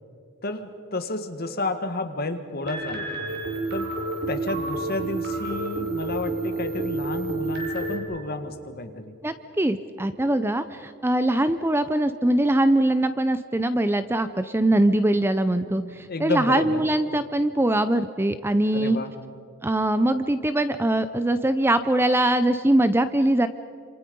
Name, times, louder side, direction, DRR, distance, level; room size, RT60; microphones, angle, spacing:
voice 1, 0.4-3.1 3.7-4.0 4.3-9.1 16.1-16.8 18.7-19.1, left 2 dB, 45° left, 7 dB, 1.7 m, -31 dB
sound 1, 2.6-8.0, right 2 dB, 50° right, 4.7 m, -29 dB
voice 2, 9.2-19.0 19.6-23.5, right 1 dB, 10° right, 11 dB, 0.5 m, -22 dB
27.5 x 27.0 x 5.4 m, 2.4 s
head